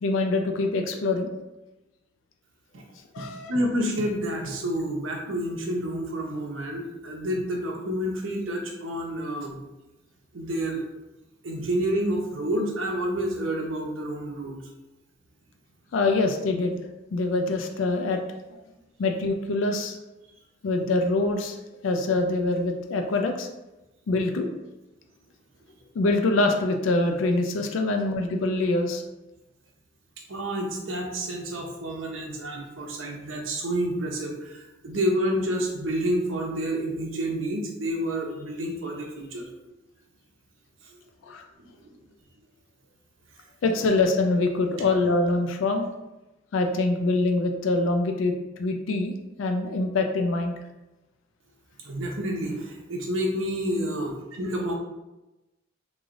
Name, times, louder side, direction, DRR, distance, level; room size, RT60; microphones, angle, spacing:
voice 1, 0.0-1.3 3.1-3.5 15.9-16.8 17.1-18.2 18.5-18.6 19.0-20.0 20.6-21.6 21.8-23.5 24.1-24.5 26.0-29.0 41.2-41.4 43.6-45.9 46.5-50.5, left 2 dB, 75° left, 5 dB, 0.4 m, -24 dB
voice 2, 3.2-9.6 10.3-10.8 11.4-14.6 30.3-39.5 40.8-41.0 41.6-42.0 43.8-43.9 51.8-54.7, right 1 dB, 80° right, 1 dB, 0.8 m, -29 dB
3.7 x 3.1 x 2.5 m, 1.0 s
head